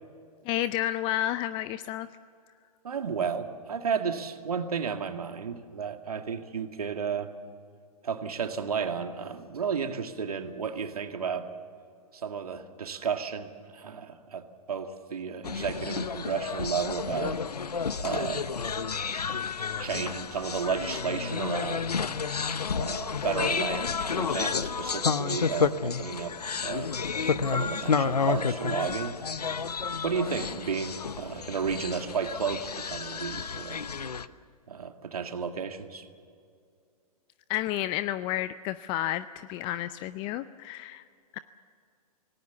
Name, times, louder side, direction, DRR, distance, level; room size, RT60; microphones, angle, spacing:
voice 1, 0.5-2.1 37.5-41.0 41.3-41.4, left 13 dB, 25° left, 15 dB, 0.5 m, -31 dB
voice 2, 2.8-7.3 8.0-11.5 12.1-17.4 18.0-18.5 19.8-21.9 22.8-26.9 27.4-29.1 30.0-33.8 34.7-36.1, right 6 dB, 70° right, 6 dB, 2.1 m, -33 dB
sound 1, 15.4-34.3, left 5 dB, 80° left, 0.9 m, -31 dB
27.0 x 19.0 x 7.1 m, 2.3 s
figure-of-eight pair, 115°, 20 cm